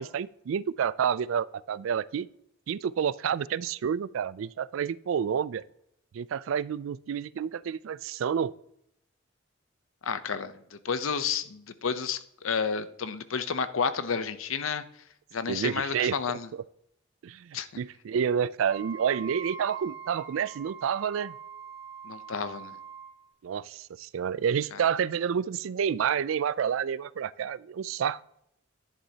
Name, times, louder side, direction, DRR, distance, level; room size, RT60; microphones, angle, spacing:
voice 1, 0.0-2.3 2.7-5.6 6.1-8.5 15.5-16.2 16.5-16.6 17.2-21.3 23.4-28.2, right 7 dB, 80° right, 20 dB, 0.3 m, -29 dB
voice 2, 10.0-14.8 15.3-16.5 17.5-17.7 22.0-22.8 24.7-24.8, left 6 dB, 85° left, 13 dB, 0.7 m, -31 dB
Wind instrument woodwind instrument, 18.6-23.2, right 7 dB, 55° right, 2.3 m, -43 dB
11.0 x 10.0 x 2.8 m, 0.76 s
head